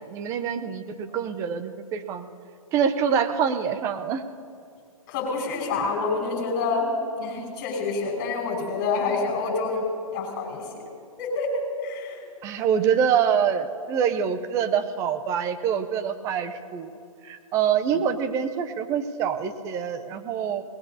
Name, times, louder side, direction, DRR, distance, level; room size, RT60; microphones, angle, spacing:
voice 1, 0.0-2.3 2.7-4.2 12.4-16.9 17.2-20.6, right 7 dB, 15° right, 10 dB, 0.6 m, -25 dB
voice 2, 5.1-9.8 10.1-10.6 11.2-12.2, left 3 dB, 30° left, 0 dB, 5.3 m, -27 dB
26.0 x 19.5 x 2.8 m, 2.3 s
hypercardioid pair, 145°, 19 cm